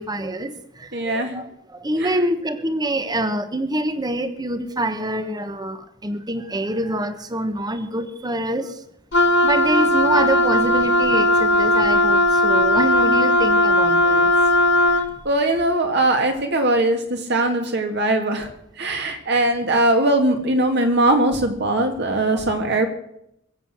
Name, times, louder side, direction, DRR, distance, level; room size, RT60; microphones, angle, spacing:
voice 1, 0.0-8.8 9.4-14.3 21.7-21.9 22.3-22.4, right 1 dB, 20° right, 10 dB, 1.1 m, -26 dB
voice 2, 0.9-1.4 2.0-2.1 15.2-18.5 18.8-22.9, right 1 dB, 55° right, 4 dB, 2.3 m, -20 dB
Wind instrument woodwind instrument, 9.1-15.1, left 1 dB, 60° left, 1.3 m, -17 dB
22.0 x 8.2 x 6.1 m, 0.77 s
head